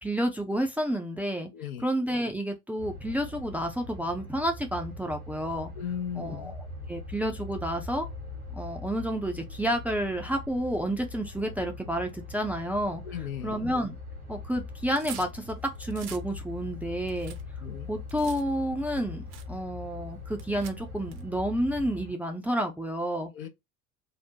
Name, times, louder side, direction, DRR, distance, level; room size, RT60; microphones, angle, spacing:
voice 1, 0.0-1.5 1.8-5.7 6.1-8.1 8.5-13.0 13.4-14.0 14.3-17.4 17.9-23.3, equal, 5° right, 0.4 m, -30 dB
voice 2, 1.5-1.8 5.8-6.5 13.0-13.6 17.6-17.9 23.3-23.5, left 9 dB, 75° left, 0.7 m, -36 dB
sound 1, 2.8-22.1, left 3 dB, 85° right, 1.8 m, -41 dB
sound 2, 14.7-16.3 16.7-18.4 19.0-19.1 19.3-19.5 20.3-21.2, right 10 dB, 50° right, 0.7 m, -45 dB
3.7 x 2.0 x 2.7 m
hypercardioid pair, 75°, 42 cm